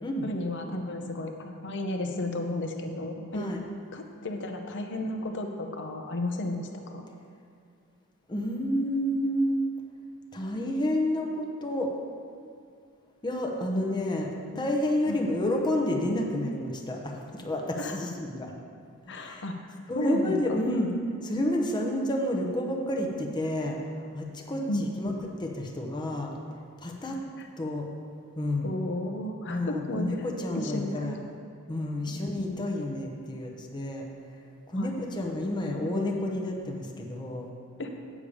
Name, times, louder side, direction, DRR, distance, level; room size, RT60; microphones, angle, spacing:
voice 1, 0.2-3.5 3.9-7.0 14.5-14.6 15.1-15.2 17.8-18.0 19.1-19.7 19.9-20.4 24.7-25.0 27.1-27.2 28.6-30.1 30.5-31.2 34.8-35.0 37.8-37.9, left 1 dB, 55° left, 4 dB, 0.9 m, -33 dB
voice 2, 8.3-9.6 10.3-11.9 13.2-18.5 19.1-19.5 19.9-20.9 21.2-23.8 24.1-25.1 25.4-26.3 26.8-27.2 27.6-27.9 28.4-28.8 29.5-31.2 31.7-34.1 34.7-37.5, left 1 dB, 20° left, 0 dB, 0.9 m, -30 dB
8.6 x 7.0 x 5.0 m, 2.4 s
head